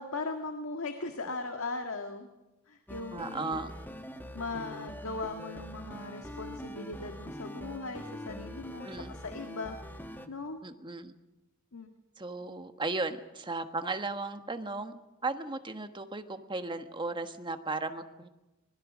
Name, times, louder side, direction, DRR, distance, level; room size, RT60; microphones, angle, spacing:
voice 1, 0.0-2.3 2.7-3.6 4.3-9.8 10.3-10.6 11.7-11.9, left 3 dB, 75° left, 5 dB, 1.7 m, -38 dB
sound 1, 2.9-10.3, equal, 10° left, 1.4 m, -43 dB
voice 2, 3.1-3.7 8.8-9.2 10.6-11.1 12.2-18.3, right 3 dB, 20° right, 7 dB, 1.3 m, -36 dB
25.5 x 20.5 x 6.2 m, 1.0 s
head